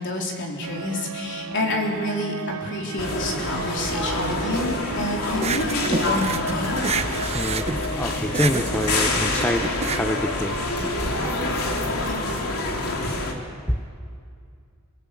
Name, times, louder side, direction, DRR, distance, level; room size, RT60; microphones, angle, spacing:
voice 1, 0.0-6.8 11.7-12.4, left 1 dB, 55° left, 0 dB, 3.8 m, -29 dB
sound 1, 0.6-9.0, right 5 dB, 80° right, 1.0 m, -37 dB
sound 2, 3.0-13.3, left 2 dB, 80° left, 3.0 m, -26 dB
sound 3, 5.3-11.1, right 4 dB, 30° right, 0.8 m, -29 dB
voice 2, 7.3-9.6 9.9-10.6 13.7-13.8, left 1 dB, 5° left, 6 dB, 0.7 m, -26 dB
27.5 x 17.0 x 8.4 m, 2.3 s
head